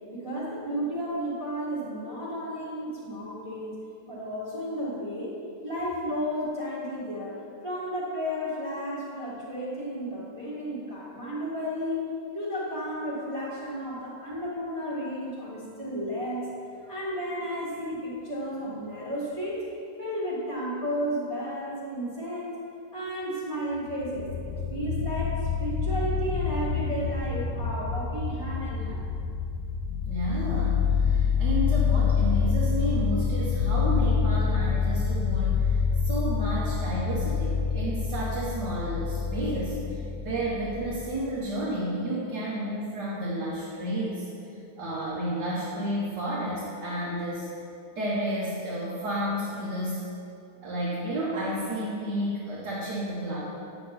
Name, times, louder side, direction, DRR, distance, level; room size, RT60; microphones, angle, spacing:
voice 1, 0.1-3.8 4.1-5.3 5.6-7.4 7.6-16.5 16.8-19.7 20.0-22.5 22.9-25.3 25.6-29.0, equal, 20° right, -8 dB, 1.8 m, -33 dB
sound 1, 23.9-41.2, left 6 dB, 85° left, 1.3 m, -27 dB
voice 2, 30.1-35.8 36.0-39.8 40.2-44.3 44.8-47.5 48.0-50.0 50.6-53.4, right 1 dB, 80° right, -7 dB, 2.0 m, -31 dB
9.5 x 7.6 x 4.1 m, 2.6 s
omnidirectional pair, 1.8 m